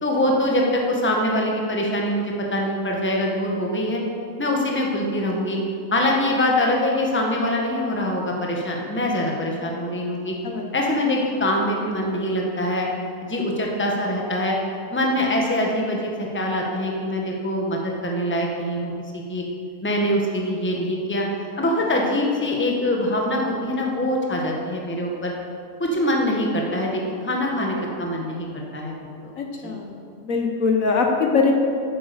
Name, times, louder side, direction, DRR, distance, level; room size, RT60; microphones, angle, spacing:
voice 1, 0.0-4.0 4.4-5.6 5.9-10.3 10.7-12.9 13.2-14.6 14.9-19.4 19.8-21.2 21.6-25.3 25.8-29.3 29.6-29.8, left 1 dB, 10° left, -1 dB, 1.2 m, -24 dB
voice 2, 29.4-29.9 30.2-31.5, left 4 dB, 60° left, 2 dB, 1.3 m, -22 dB
8.7 x 8.4 x 6.7 m, 2.4 s
omnidirectional pair, 1.6 m